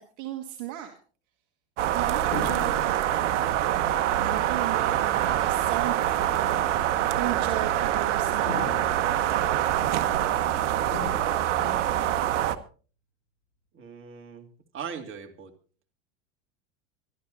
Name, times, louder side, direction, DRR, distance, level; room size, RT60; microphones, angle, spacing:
voice 1, 0.2-1.0 1.8-6.7 7.2-8.9, right 12 dB, 50° right, 4 dB, 1.7 m, -36 dB
sound 1, 1.8-12.6, right 12 dB, 75° right, 1.1 m, -25 dB
sound 2, 2.3-2.9 8.5-9.0 10.9-11.2 11.6-11.9, left 5 dB, 85° left, 5.2 m, -36 dB
voice 2, 13.7-14.5 14.7-15.5, right 7 dB, 35° right, 4 dB, 2.6 m, -39 dB
24.5 x 12.0 x 2.7 m, 0.39 s
hypercardioid pair, 90°, 37 cm